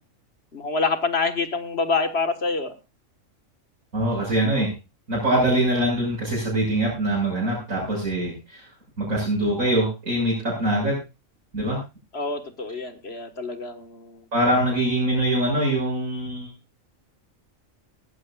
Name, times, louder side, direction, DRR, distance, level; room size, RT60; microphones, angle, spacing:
voice 1, 0.5-2.7 12.1-14.3, left 4 dB, 50° left, 8 dB, 1.8 m, -26 dB
voice 2, 3.9-4.7 5.1-8.6 9.0-11.0 11.5-11.8 14.3-16.5, right 1 dB, 80° right, -5 dB, 7.1 m, -23 dB
19.0 x 14.5 x 2.4 m, 0.27 s
omnidirectional pair, 1.4 m